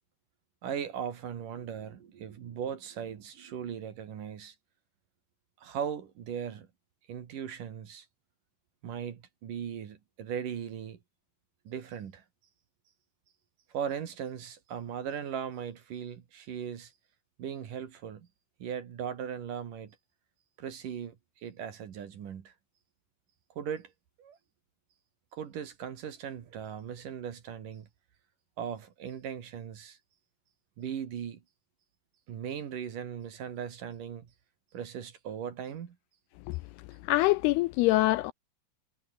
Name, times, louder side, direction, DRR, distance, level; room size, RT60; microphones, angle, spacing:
voice 1, 0.6-4.5 5.6-6.7 7.1-8.1 8.8-11.0 11.6-12.2 13.7-16.9 17.4-18.3 18.6-20.0 20.6-22.5 23.6-23.9 24.2-24.4 25.3-27.9 28.6-30.0 30.8-31.4 32.3-34.3 34.7-36.0, right 8 dB, 55° right, 3.3 m, -38 dB
voice 2, 37.0-38.3, left 19 dB, 80° left, 2.4 m, -24 dB
omnidirectional pair, 5.0 m